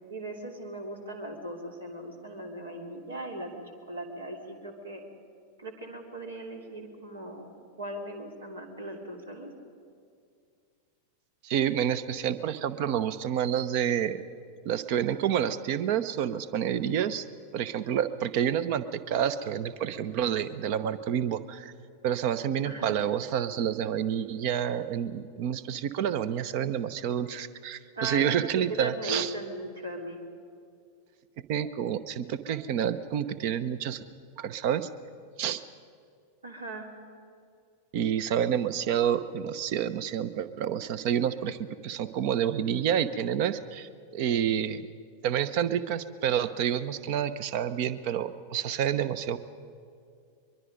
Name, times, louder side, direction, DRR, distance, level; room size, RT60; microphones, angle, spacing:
voice 1, 0.1-3.5 3.9-5.0 5.6-9.5 22.6-23.0 27.9-30.2 36.4-36.9, right 1 dB, 70° right, 3 dB, 2.9 m, -38 dB
voice 2, 11.4-14.2 14.6-17.2 17.5-21.7 22.0-29.3 31.5-34.0 34.4-34.9 35.4-35.6 37.9-44.8 45.2-49.4, right 9 dB, 45° right, 15 dB, 0.9 m, -29 dB
23.0 x 23.0 x 5.2 m, 2.3 s
figure-of-eight pair, 90°, 0 cm